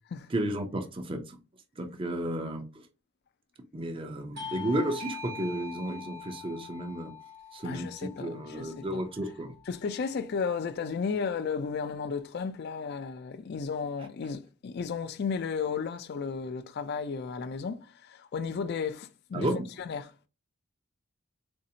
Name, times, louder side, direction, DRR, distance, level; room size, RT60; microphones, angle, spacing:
voice 1, 0.3-1.4 1.8-2.8 3.7-7.1 7.5-9.5 19.3-19.7, right 1 dB, 25° right, 0.5 m, -33 dB
Bell / Doorbell, 4.4-9.4, left 4 dB, 50° right, 1.1 m, -43 dB
voice 2, 7.6-9.0 9.7-19.5 19.8-20.1, left 5 dB, 50° left, 0.4 m, -34 dB
4.1 x 2.6 x 2.7 m
head